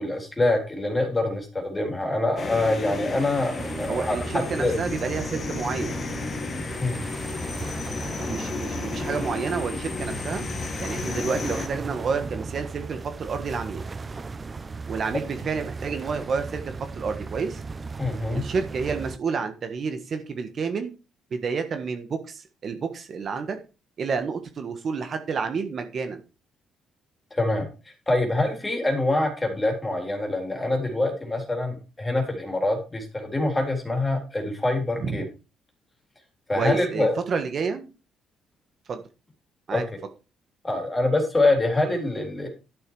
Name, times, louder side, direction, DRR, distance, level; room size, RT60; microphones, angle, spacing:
voice 1, 0.0-4.7 6.8-7.0 18.0-18.4 27.3-27.7 28.1-35.2 36.5-37.1 39.7-39.8 40.6-42.5, left 2 dB, 15° left, 3 dB, 3.7 m, -25 dB
sound 1, 2.4-11.7, left 5 dB, 35° left, 1.7 m, -33 dB
sound 2, 3.6-19.2, right 4 dB, 25° right, 0.7 m, -36 dB
voice 2, 3.9-6.0 8.3-10.4 10.8-13.8 14.9-17.6 18.3-20.9 21.3-23.6 24.0-26.2 35.0-35.2 36.5-37.9 38.9-39.0 39.7-39.8, right 5 dB, 40° right, 7 dB, 1.4 m, -29 dB
12.0 x 6.9 x 4.8 m, 0.31 s
cardioid pair, 135°, 0 cm